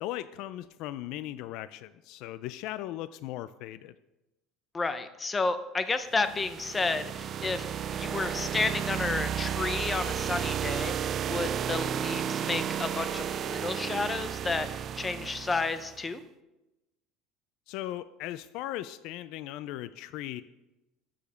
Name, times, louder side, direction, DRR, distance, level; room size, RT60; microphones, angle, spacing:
voice 1, 0.0-3.9 17.7-20.4, left 14 dB, 55° left, 14 dB, 0.4 m, -38 dB
voice 2, 4.7-7.7 7.9-16.2, left 3 dB, 15° left, 10 dB, 0.6 m, -31 dB
sound 1, 6.1-16.0, right 8 dB, 30° right, 0.3 m, -33 dB
13.5 x 5.0 x 6.3 m, 0.98 s
cardioid pair, 165°, 0 cm